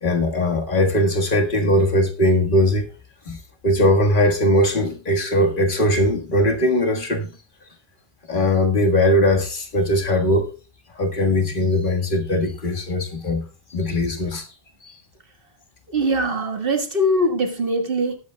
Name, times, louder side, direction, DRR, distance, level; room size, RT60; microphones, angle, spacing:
voice 1, 0.0-2.9 3.3-7.3 8.3-10.5 11.0-14.5 14.8-15.0, left 1 dB, 55° left, 1.8 m, -20 dB
voice 2, 15.9-18.2, right 1 dB, 60° right, 1.8 m, -22 dB
19.0 x 8.2 x 2.2 m
omnidirectional pair, 1.1 m